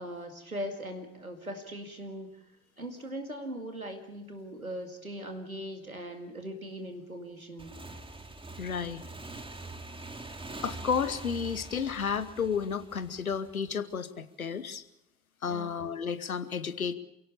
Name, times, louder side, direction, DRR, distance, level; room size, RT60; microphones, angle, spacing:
voice 1, 0.0-2.5 2.8-7.8 15.5-15.8, equal, 90° right, 5 dB, 2.2 m, -40 dB
Motorcycle / Engine, 7.6-13.9, right 2 dB, 10° right, 2.4 m, -44 dB
voice 2, 8.6-9.0 10.6-14.8 15.4-16.9, left 6 dB, 85° left, 14 dB, 1.1 m, -32 dB
28.0 x 17.0 x 6.9 m, 0.85 s
figure-of-eight pair, 50°, 41 cm